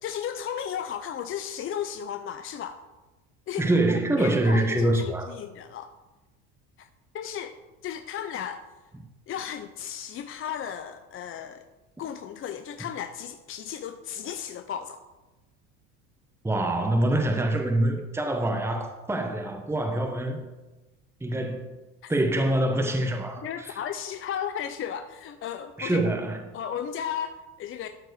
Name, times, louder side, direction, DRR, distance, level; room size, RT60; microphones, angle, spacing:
voice 1, 0.0-2.8 3.5-3.7 4.1-5.9 6.8-6.9 7.1-7.6 7.8-8.6 9.3-11.6 12.0-15.0 23.4-26.1 26.5-27.9, left 9 dB, 35° left, 8 dB, 0.6 m, -34 dB
voice 2, 3.6-5.3 16.4-20.4 21.2-21.7 22.1-23.8 25.8-26.4, right 1 dB, 5° right, 3 dB, 1.1 m, -25 dB
12.0 x 4.5 x 4.9 m, 1.1 s
hypercardioid pair, 85°, 38 cm